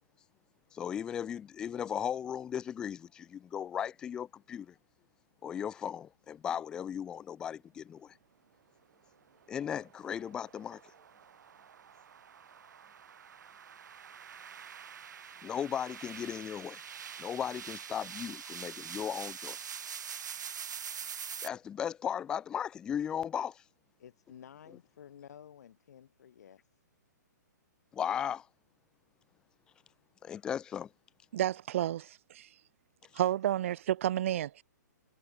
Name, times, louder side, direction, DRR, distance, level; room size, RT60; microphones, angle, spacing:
voice 1, 0.7-4.7 5.4-8.1 9.5-10.8 15.4-16.8 17.2-19.6 21.4-23.6 27.9-28.5 30.2-30.9, left 9 dB, 10° left, 0.3 m, -36 dB
sound 1, 9.4-21.5, right 8 dB, 70° right, 2.1 m, -45 dB
voice 2, 24.0-26.7 33.1-33.3, left 9 dB, 60° left, 2.1 m, -53 dB
voice 3, 31.3-32.5 33.1-34.6, right 12 dB, 45° right, 0.6 m, -31 dB
hypercardioid pair, 165°, 10 cm